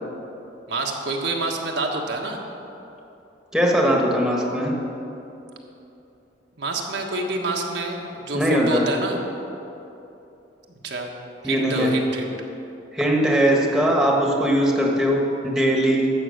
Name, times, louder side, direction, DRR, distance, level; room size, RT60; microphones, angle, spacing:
voice 1, 0.7-2.4 6.6-9.2 10.8-11.1 11.4-12.3, right 2 dB, 75° right, 0 dB, 1.4 m, -27 dB
voice 2, 3.5-4.7 8.3-8.8 11.4-11.9 12.9-16.1, equal, ahead, -1 dB, 1.5 m, -20 dB
12.0 x 7.8 x 6.5 m, 2.9 s
head